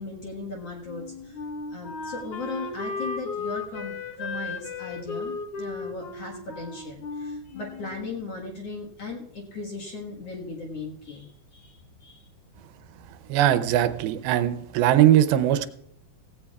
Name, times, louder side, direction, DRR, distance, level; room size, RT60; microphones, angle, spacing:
voice 1, 0.0-1.4 1.7-12.3, left 3 dB, 55° left, 0 dB, 2.1 m, -37 dB
Wind instrument woodwind instrument, 0.9-8.4, left 4 dB, 70° left, 1.4 m, -35 dB
voice 2, 13.3-15.7, right 11 dB, 80° right, 10 dB, 2.5 m, -20 dB
16.0 x 16.0 x 2.3 m, 0.70 s
omnidirectional pair, 4.4 m